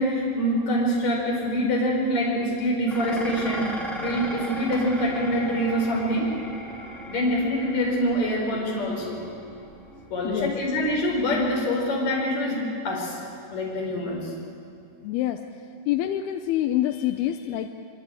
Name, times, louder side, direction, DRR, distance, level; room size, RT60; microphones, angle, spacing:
voice 1, 0.0-3.7 4.0-6.3 7.1-9.2 10.1-13.2 13.5-14.3, equal, 45° left, -2 dB, 6.2 m, -25 dB
Dishes pots and pans, 2.9-11.7, equal, ahead, 1.7 m, -38 dB
voice 2, 15.0-15.4 15.9-17.7, left 13 dB, 85° left, 6 dB, 2.8 m, -26 dB
24.5 x 24.0 x 8.9 m, 2.4 s
omnidirectional pair, 4.4 m